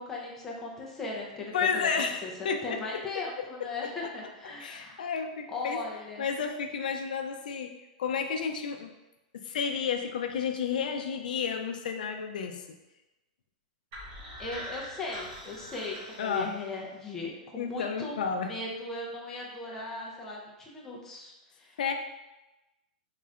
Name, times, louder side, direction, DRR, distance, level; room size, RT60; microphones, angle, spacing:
voice 1, 0.0-5.0 5.5-6.3 14.4-18.2 18.5-21.9, left 3 dB, 5° left, -4 dB, 0.4 m, -38 dB
voice 2, 1.5-3.5 3.8-3.9 4.6-5.8 6.2-7.7 8.0-8.9 9.3-12.6 16.2-16.5 17.6-18.5 21.8-21.9, left 6 dB, 75° left, 5 dB, 0.4 m, -31 dB
sound 1, 13.9-16.9, equal, 35° right, 1.0 m, -43 dB
3.7 x 2.4 x 3.2 m, 1.0 s
supercardioid pair, 180°, 5 cm